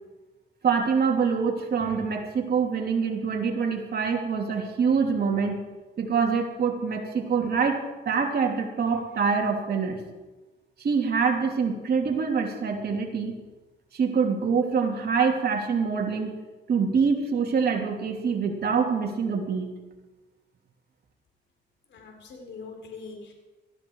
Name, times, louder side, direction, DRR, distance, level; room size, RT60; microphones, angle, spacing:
voice 1, 0.6-5.6 6.0-10.0 10.8-13.4 13.9-16.4 16.7-19.7, right 5 dB, 55° right, 2 dB, 3.0 m, -25 dB
voice 2, 21.9-23.3, left 4 dB, 65° left, 2 dB, 4.2 m, -42 dB
18.5 x 14.5 x 4.8 m, 1.2 s
cardioid pair, 90°, 20 cm